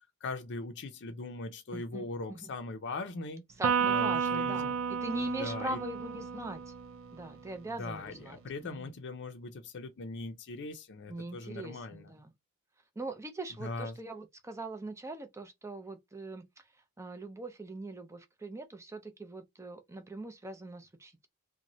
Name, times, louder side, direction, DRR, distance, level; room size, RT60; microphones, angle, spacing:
voice 1, 0.2-3.4 3.9-4.7 5.1-5.8 7.8-12.1 13.6-14.0, left 3 dB, 55° left, 0.5 m, -40 dB
voice 2, 1.7-2.5 3.6-6.7 7.1-8.9 11.1-12.3 13.0-21.3, right 2 dB, 15° right, 0.5 m, -42 dB
Electric guitar, 3.6-7.2, right 6 dB, 65° right, 0.5 m, -32 dB
3.0 x 2.2 x 2.6 m
head